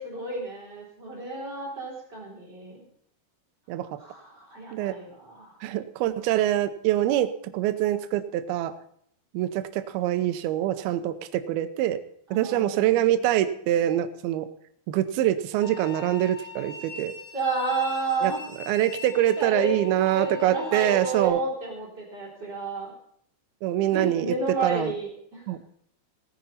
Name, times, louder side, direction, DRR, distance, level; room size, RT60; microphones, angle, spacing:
voice 1, 0.0-2.8 4.0-5.5 12.3-13.2 17.3-18.4 19.4-22.9 23.9-25.4, right 3 dB, 25° right, -4 dB, 3.8 m, -31 dB
voice 2, 3.7-4.0 4.7-5.0 5.6-8.7 9.3-12.0 12.3-14.5 14.9-17.1 18.2-18.3 18.7-21.4 23.6-24.3 24.6-24.9 25.5-25.6, right 13 dB, 90° right, 9 dB, 2.2 m, -25 dB
sound 1, 15.6-21.3, left 6 dB, 65° left, 3.7 m, -41 dB
17.5 x 9.5 x 4.2 m, 0.66 s
omnidirectional pair, 5.3 m